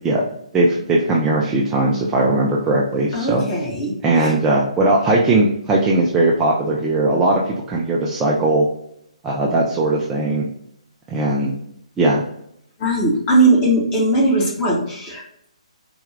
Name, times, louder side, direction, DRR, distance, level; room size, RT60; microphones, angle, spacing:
voice 1, 0.5-3.4 4.0-8.7 9.2-10.4 11.1-11.5 12.0-12.2, right 2 dB, 10° right, -4 dB, 0.4 m, -18 dB
voice 2, 3.1-4.3 12.8-15.2, right 2 dB, 20° left, -4 dB, 1.2 m, -19 dB
4.3 x 2.3 x 3.2 m, 0.72 s
figure-of-eight pair, 135°, 4 cm